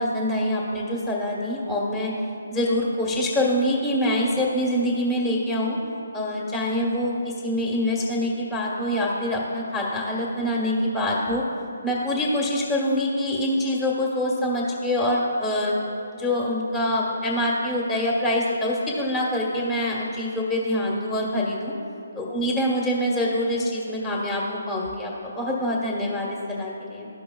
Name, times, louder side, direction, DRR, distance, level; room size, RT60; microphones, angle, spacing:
voice 1, 0.0-2.1 2.5-5.8 6.1-11.4 11.8-15.8 16.1-21.7 22.1-27.1, left 1 dB, 15° left, -3 dB, 1.4 m, -25 dB
14.0 x 5.5 x 2.3 m, 2.8 s
figure-of-eight pair, 150°, 0 cm